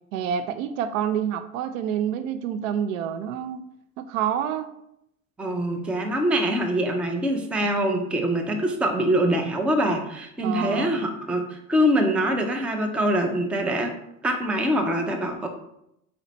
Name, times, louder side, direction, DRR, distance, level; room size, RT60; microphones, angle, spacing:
voice 1, 0.1-3.6 4.0-4.7 10.4-11.0, right 9 dB, 65° right, 10 dB, 0.5 m, -28 dB
voice 2, 5.4-14.0 14.2-15.5, equal, 5° right, 3 dB, 0.3 m, -24 dB
4.2 x 2.9 x 4.0 m, 0.80 s
figure-of-eight pair, 70°, 43 cm